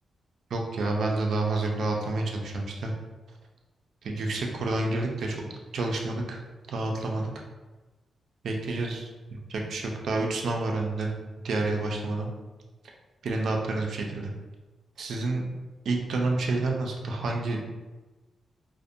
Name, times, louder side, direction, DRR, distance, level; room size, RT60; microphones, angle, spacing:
voice 1, 0.5-2.9 4.0-5.4 5.7-6.4 6.7-7.3 8.4-9.1 9.5-11.1 11.4-12.3 13.2-14.3 15.0-15.4 15.9-17.6, right 2 dB, 65° right, 1 dB, 0.4 m, -29 dB
2.4 x 2.1 x 2.6 m, 1.2 s
wide cardioid pair, 165°, 0 cm